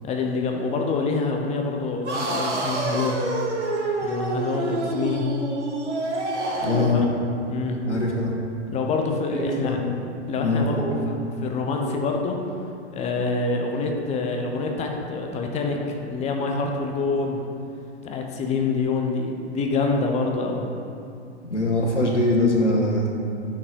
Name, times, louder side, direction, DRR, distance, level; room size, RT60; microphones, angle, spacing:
voice 1, 0.0-3.2 4.0-5.3 6.6-7.0 7.5-7.8 8.7-9.8 10.3-11.1 11.4-12.5 12.9-17.4 18.0-20.7, left 3 dB, 20° left, 2 dB, 0.9 m, -26 dB
sound 1, 2.0-7.0, right 2 dB, 75° right, 1.7 m, -27 dB
voice 2, 6.6-7.0 7.8-8.3 9.3-9.8 10.4-11.0 21.4-23.1, left 2 dB, 85° left, -2 dB, 1.9 m, -22 dB
9.0 x 6.4 x 4.6 m, 2.6 s
figure-of-eight pair, 110°, 35 cm